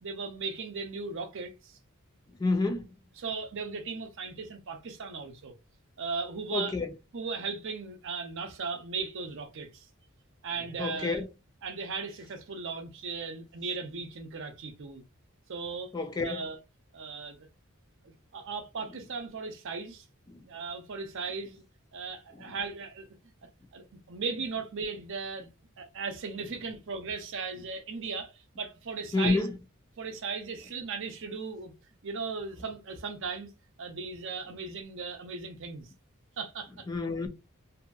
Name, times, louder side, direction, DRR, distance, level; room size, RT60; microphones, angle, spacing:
voice 1, 0.0-1.8 3.2-5.5 6.0-6.8 7.1-9.9 10.4-11.2 11.6-15.0 15.5-15.9 16.2-16.6 16.9-17.5 18.0-20.1 20.4-21.6 21.9-23.1 23.7-25.5 25.8-29.4 30.0-31.7 32.0-33.5 33.8-35.9 36.4-36.9, right 4 dB, 60° right, 0.6 m, -37 dB
voice 2, 2.4-2.9 6.5-6.9 10.8-11.3 15.9-16.4 20.3-20.4 22.3-22.5 29.1-29.6 36.9-37.3, left 3 dB, 20° left, 0.3 m, -29 dB
2.7 x 2.5 x 2.3 m
head